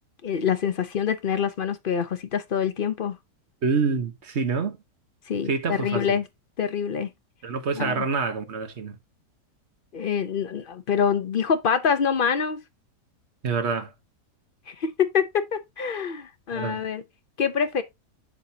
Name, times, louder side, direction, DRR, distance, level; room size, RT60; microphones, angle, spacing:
voice 1, 0.2-3.2 5.3-6.2 6.6-7.1 7.7-8.1 9.9-12.6 14.7-17.0 17.4-17.8, left 7 dB, 50° left, 0.6 m, -25 dB
voice 2, 3.6-4.8 5.5-6.2 7.4-9.0 13.4-13.9 16.5-16.8, right 5 dB, 45° right, 1.3 m, -27 dB
7.4 x 6.7 x 2.8 m
omnidirectional pair, 1.8 m